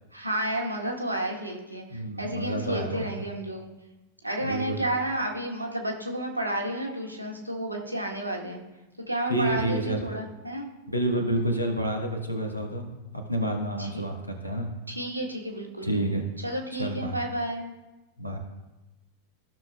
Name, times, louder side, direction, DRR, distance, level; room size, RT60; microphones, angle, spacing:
voice 1, 0.1-3.7 4.2-8.6 9.1-10.7 13.8-14.0 14.9-17.7, right 1 dB, 85° right, 0 dB, 1.2 m, -31 dB
voice 2, 1.9-3.2 4.4-4.8 9.3-10.2 10.9-12.9 13.1-14.7 15.8-16.2 16.8-17.2 18.2-18.4, right 1 dB, 90° left, 2 dB, 1.4 m, -29 dB
14.0 x 6.3 x 2.3 m, 1.0 s
figure-of-eight pair, 90°, 0 cm